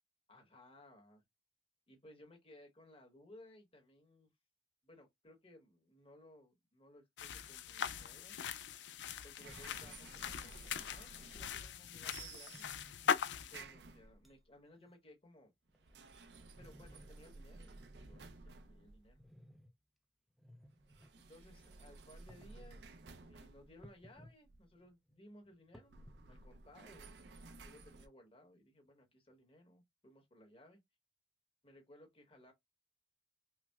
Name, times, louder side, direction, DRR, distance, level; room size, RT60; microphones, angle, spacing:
voice 1, 0.3-1.2 1.9-4.3 4.8-8.4 9.2-12.7 13.5-15.5 16.6-19.2 21.2-23.0 23.2-26.0 26.3-27.1 27.6-30.8 31.6-32.5, left 1 dB, 35° left, 1.1 m, -61 dB
sound 1, 7.2-13.6, left 7 dB, 90° left, 0.4 m, -40 dB
sound 2, 9.4-11.8 12.0-13.0 13.5-14.4 15.7-19.3 20.8-24.8 25.8-28.1, right 3 dB, 80° right, 0.5 m, -55 dB
sound 3, 9.5-10.7 11.6-11.7 12.5-13.2 13.8-13.9 14.2-14.4 14.7-14.9 15.4-17.2 17.6-18.3 19.1-19.7 20.3-21.1 22.1-22.8 23.8-24.4 24.7-26.5, equal, ahead, 0.4 m, -61 dB
5.6 x 2.0 x 2.3 m
head